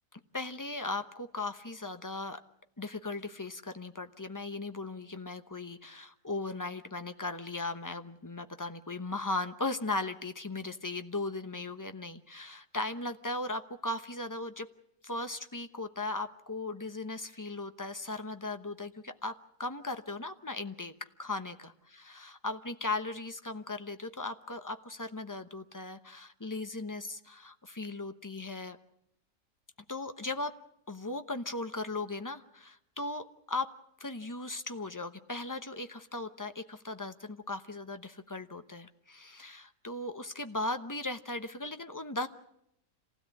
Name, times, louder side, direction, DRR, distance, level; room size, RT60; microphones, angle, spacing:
voice 1, 0.3-2.4 2.8-14.7 15.0-20.9 21.2-28.8 29.9-30.5 30.9-33.7 34.0-42.3, left 2 dB, 15° left, 9 dB, 0.6 m, -37 dB
26.5 x 16.5 x 8.4 m, 0.79 s
omnidirectional pair, 1.7 m